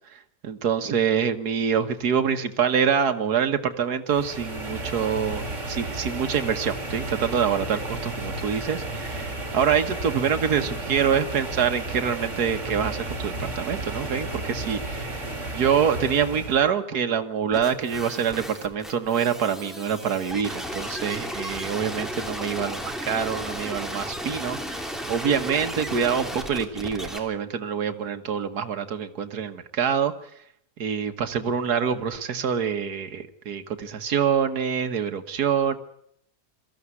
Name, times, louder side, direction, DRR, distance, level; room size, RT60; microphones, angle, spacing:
voice 1, 0.1-15.3 15.5-30.1 30.8-35.8, right 7 dB, 80° right, 7 dB, 1.9 m, -26 dB
sound 1, 4.1-16.7, right 2 dB, 50° right, 3.6 m, -33 dB
sound 2, 17.5-27.2, equal, ahead, 2.9 m, -34 dB
22.5 x 14.5 x 9.7 m, 0.72 s
omnidirectional pair, 1.7 m